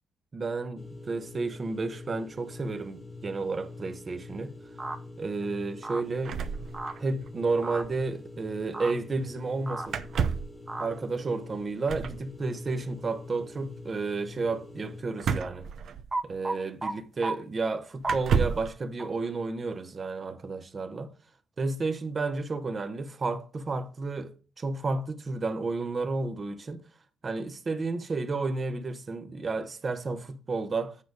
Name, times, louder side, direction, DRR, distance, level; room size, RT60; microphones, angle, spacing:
voice 1, 0.3-4.5 5.2-6.4 7.0-10.0 10.8-15.7 16.2-21.1 21.6-26.8 27.2-31.0, right 3 dB, 35° right, 1.1 m, -32 dB
sound 1, 0.8-15.0, left 2 dB, 20° left, 1.4 m, -45 dB
sound 2, 4.8-5.0 5.8-6.0 6.7-6.9 7.6-7.8 8.7-8.9 9.7-9.9 10.7-10.9 16.1-16.9 17.2-17.3 18.0-18.2 19.0-19.1, right 2 dB, 20° right, 1.2 m, -32 dB
sound 3, 6.2-7.3 7.6-7.7 7.8-8.0 9.9-10.6 11.9-12.2 15.2-16.4 17.2-17.3 18.0-18.7, right 6 dB, 60° right, 0.8 m, -30 dB
8.8 x 5.1 x 4.9 m
cardioid pair, 90°, 0 cm